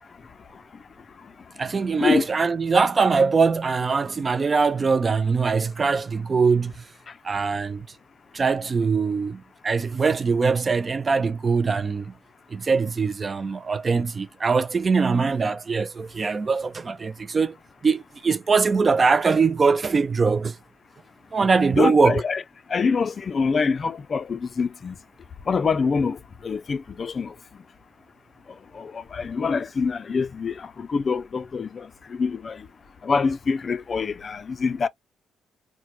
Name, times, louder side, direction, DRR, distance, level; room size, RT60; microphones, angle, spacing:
voice 1, 1.6-6.8 7.2-7.9 8.3-12.1 12.5-17.6 17.8-20.6 21.3-22.2, right 4 dB, 35° right, 0.3 m, -22 dB
voice 2, 21.7-22.4 22.7-24.9 25.5-27.3 28.7-32.7 33.0-34.9, left 5 dB, 40° left, 0.3 m, -25 dB
4.3 x 2.1 x 2.2 m
cardioid pair, 90°, 0 cm